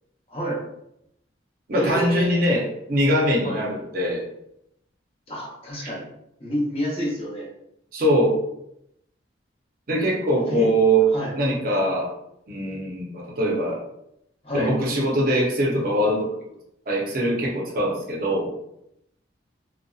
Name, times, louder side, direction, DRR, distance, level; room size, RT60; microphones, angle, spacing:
voice 1, 0.3-0.6 1.7-2.5 3.4-3.6 5.3-6.1 6.4-7.5 10.5-10.7 11.1-11.3 14.4-14.7, equal, 30° left, -5 dB, 0.7 m, -28 dB
voice 2, 1.7-4.2 7.9-8.4 9.9-11.0 11.3-12.1 12.5-13.8 14.5-16.3 16.9-18.5, right 1 dB, 50° right, -2 dB, 0.6 m, -22 dB
2.6 x 2.2 x 2.3 m, 0.80 s
head